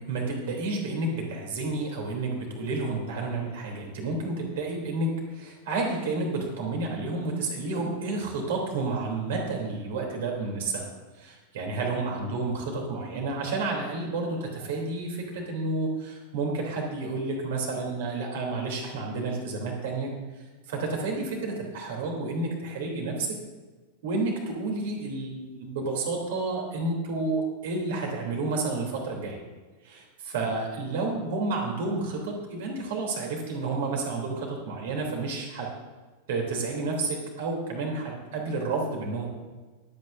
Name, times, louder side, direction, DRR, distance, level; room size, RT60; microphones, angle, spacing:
voice 1, 0.1-5.1 5.3-10.9 11.2-20.1 20.7-23.3 24.0-29.4 29.8-35.7 36.3-39.3, right 3 dB, 55° right, 0 dB, 3.1 m, -30 dB
24.5 x 8.7 x 2.6 m, 1.3 s
figure-of-eight pair, 90°, 0 cm